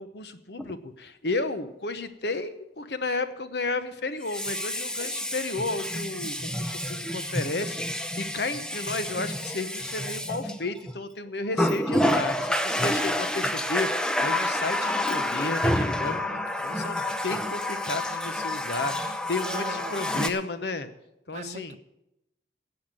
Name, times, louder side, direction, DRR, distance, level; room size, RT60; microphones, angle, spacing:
voice 1, 0.0-20.9 21.3-21.8, left 3 dB, 70° left, 1.0 m, -33 dB
Water tap faucet, 0.6-0.7 4.2-11.0 11.5-20.3, left 1 dB, 5° left, 0.6 m, -29 dB
voice 2, 19.4-20.0 21.3-21.8, right 4 dB, 40° right, 0.4 m, -39 dB
16.5 x 5.8 x 8.9 m
head